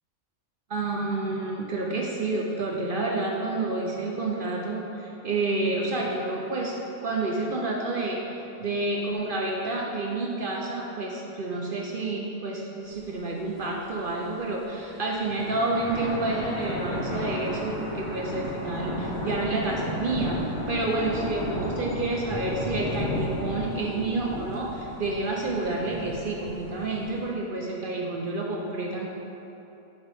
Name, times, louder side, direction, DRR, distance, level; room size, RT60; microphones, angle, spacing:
voice 1, 0.7-20.4 20.7-29.1, right 2 dB, 60° right, -2 dB, 0.5 m, -29 dB
sound 1, 13.0-13.1 13.4-13.5 14.0-14.4 15.1-27.2, left 1 dB, 20° left, 1.2 m, -34 dB
8.5 x 5.7 x 3.4 m, 2.9 s
omnidirectional pair, 1.7 m